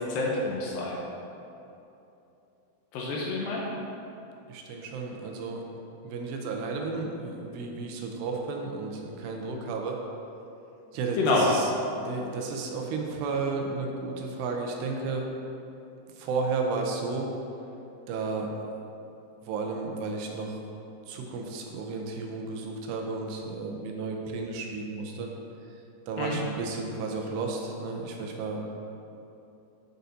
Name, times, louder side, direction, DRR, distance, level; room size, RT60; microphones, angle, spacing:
voice 1, 0.1-1.0 2.9-3.6 11.2-11.5 26.2-26.4, left 2 dB, 85° left, -3 dB, 2.0 m, -27 dB
voice 2, 4.5-5.6 6.0-10.0 10.9-11.7 12.0-15.3 16.2-17.3 18.1-18.5 19.5-20.6 21.1-25.3 25.7-25.8 26.1-28.7, right 4 dB, 85° right, 1 dB, 2.7 m, -33 dB
9.1 x 6.6 x 2.7 m, 2.8 s
omnidirectional pair, 4.9 m